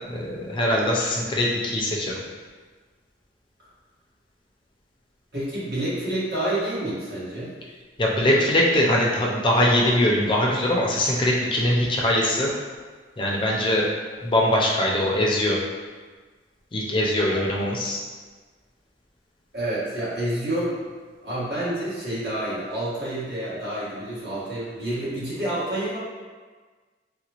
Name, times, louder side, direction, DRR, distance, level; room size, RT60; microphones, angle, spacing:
voice 1, 0.1-2.2 8.0-12.5 13.2-13.9 14.2-15.6 16.7-18.0, left 1 dB, 30° left, -3 dB, 0.5 m, -22 dB
voice 2, 5.3-7.5 17.3-17.4 19.5-20.8 21.2-26.0, right 1 dB, 70° right, -10 dB, 1.5 m, -28 dB
4.0 x 2.2 x 2.9 m, 1.4 s
head